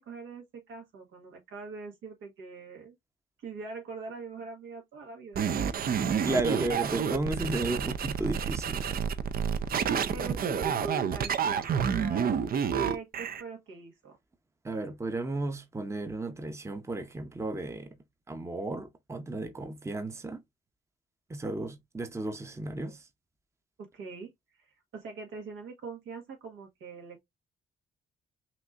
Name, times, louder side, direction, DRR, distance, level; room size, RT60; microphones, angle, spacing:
voice 1, 0.0-3.0 3.4-5.6 6.1-6.4 10.1-12.3 12.7-14.2 23.8-24.3 24.6-27.2, right 4 dB, 80° right, 1.7 m, -42 dB
sound 1, 5.4-13.4, right 7 dB, 50° right, 0.5 m, -29 dB
voice 2, 6.0-9.0 14.6-18.0 18.3-20.4 21.3-23.1, right 2 dB, 15° right, 0.8 m, -34 dB
5.9 x 2.8 x 2.5 m
cardioid pair, 90°, 20 cm